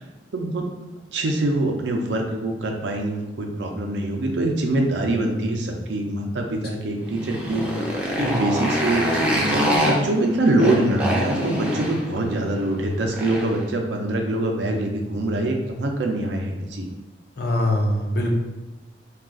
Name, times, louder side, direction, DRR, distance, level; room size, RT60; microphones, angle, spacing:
voice 1, 0.3-0.7 1.1-7.7 8.1-16.9, right 1 dB, 75° right, 2 dB, 0.5 m, -24 dB
Motorcycle, 7.0-13.6, equal, 10° right, 0.4 m, -25 dB
voice 2, 17.4-18.3, left 1 dB, 60° left, 1 dB, 0.5 m, -23 dB
2.3 x 2.3 x 3.6 m, 1.1 s
head